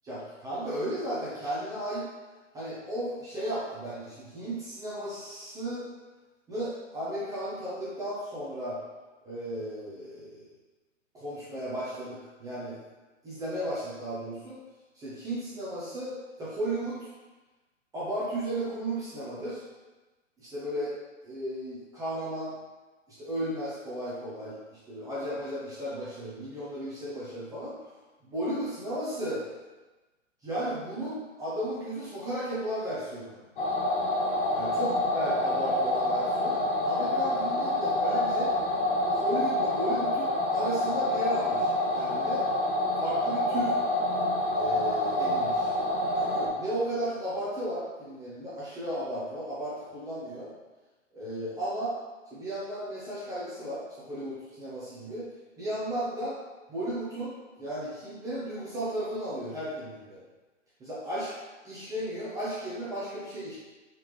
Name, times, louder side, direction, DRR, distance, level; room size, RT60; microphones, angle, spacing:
voice 1, 0.0-2.1 2.5-5.8 6.5-8.8 9.2-10.4 11.1-12.8 13.2-14.6 14.9-17.1 17.9-19.6 20.4-20.9 21.2-22.5 23.1-27.8 28.2-29.4 30.4-33.4 34.5-38.5 39.0-42.5 43.0-43.7 44.6-45.7 46.2-50.5 51.1-51.9 52.3-55.3 55.6-56.4 56.7-60.2 60.8-61.3 61.6-63.6, right 1 dB, 10° right, -9 dB, 0.7 m, -34 dB
sound 1, 33.6-46.5, left 1 dB, 40° left, 1.0 m, -27 dB
4.1 x 3.4 x 3.1 m, 1.2 s
figure-of-eight pair, 125°, 38 cm